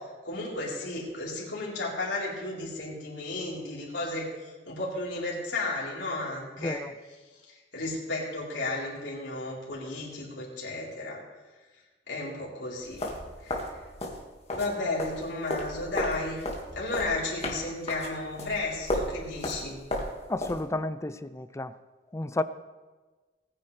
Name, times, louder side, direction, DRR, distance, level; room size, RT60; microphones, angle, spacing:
voice 1, 0.0-6.8 7.5-11.2 12.1-13.0 13.4-13.8 14.6-16.5 16.7-19.8, left 2 dB, 75° left, -5 dB, 3.9 m, -33 dB
voice 2, 6.6-6.9 20.3-21.8 22.1-22.4, left 2 dB, 15° left, 13 dB, 0.4 m, -31 dB
sound 1, 12.8-14.7 15.0-20.6, left 1 dB, 35° left, 1.9 m, -34 dB
19.0 x 9.7 x 3.3 m, 1.3 s
head